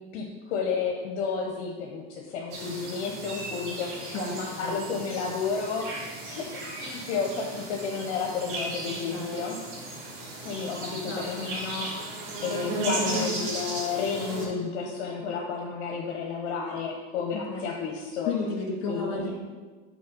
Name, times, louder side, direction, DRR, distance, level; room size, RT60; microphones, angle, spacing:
voice 1, 0.1-9.6 10.4-11.9 12.2-18.3 18.9-19.3, left 5 dB, 75° left, 0 dB, 1.1 m, -32 dB
sound 1, 2.5-14.4, right 2 dB, 75° right, 2.3 m, -35 dB
voice 2, 4.1-4.7 8.9-9.4 11.1-11.5 17.3-17.7 18.3-19.4, left 3 dB, 50° left, 0 dB, 2.4 m, -33 dB
6.3 x 4.4 x 6.1 m, 1.4 s
supercardioid pair, 125°, 34 cm